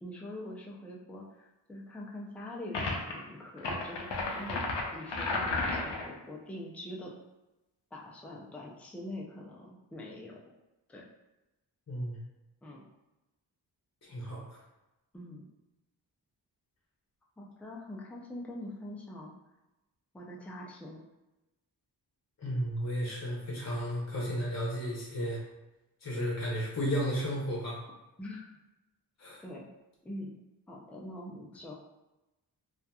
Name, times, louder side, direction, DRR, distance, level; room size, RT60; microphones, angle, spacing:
voice 1, 0.0-4.7 4.9-7.1 7.9-10.4 10.9-11.1 12.6-12.8 15.1-15.5 17.4-19.3 20.1-21.0 28.2-28.5 29.4-29.7 30.0-30.3 30.7-31.7, left 1 dB, 5° left, -2 dB, 0.3 m, -44 dB
sound 1, 2.7-3.1 3.6-6.1, left 3 dB, 85° left, 0.6 m, -33 dB
voice 2, 11.9-12.2 14.0-14.6 22.4-25.4 26.0-27.8 29.2-29.4, equal, 40° left, -5 dB, 0.7 m, -33 dB
2.7 x 2.4 x 2.2 m, 1.0 s
wide cardioid pair, 75°, 42 cm